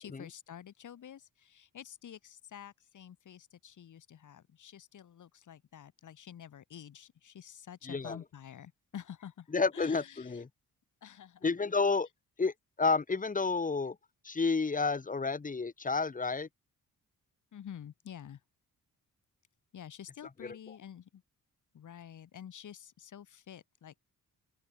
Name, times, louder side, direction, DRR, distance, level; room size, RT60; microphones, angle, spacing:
voice 1, 0.0-9.5 9.7-10.4 11.0-11.5 17.5-18.4 19.7-21.2 21.7-24.0, left 9 dB, 55° left, 1.1 m, -49 dB
voice 2, 7.9-8.2 9.5-10.5 11.4-12.1 12.4-12.5 12.8-14.0 14.2-16.5 20.4-20.5, left 4 dB, 25° left, 0.8 m, -30 dB
open air
cardioid pair, 75°, 35 cm